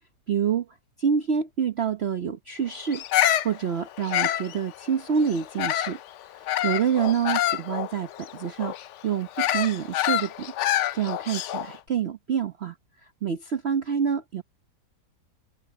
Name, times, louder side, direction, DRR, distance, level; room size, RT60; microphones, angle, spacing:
voice 1, 0.3-0.7 1.0-3.0 3.4-6.0 6.3-8.7 9.0-10.5 10.9-12.7 13.2-14.4, right 7 dB, 45° right, 0.9 m, -27 dB
Bird vocalization bird call bird song, 2.9-6.0 6.5-11.8, left 12 dB, 85° left, 0.6 m, -27 dB
omnidirectional pair, 1.8 m